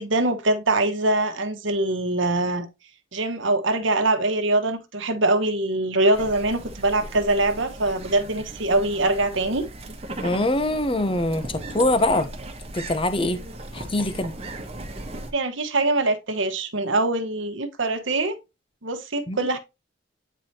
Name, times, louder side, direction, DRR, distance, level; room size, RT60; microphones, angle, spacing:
voice 1, 0.0-2.7 3.1-9.6 15.3-18.4 18.8-19.6, right 2 dB, 70° right, 1.3 m, -23 dB
sound 1, 6.1-15.3, right 1 dB, 30° right, 1.3 m, -37 dB
voice 2, 10.2-12.3 12.7-13.4 13.7-14.3 19.3-19.6, left 1 dB, 25° left, 0.7 m, -23 dB
8.9 x 4.6 x 2.8 m
head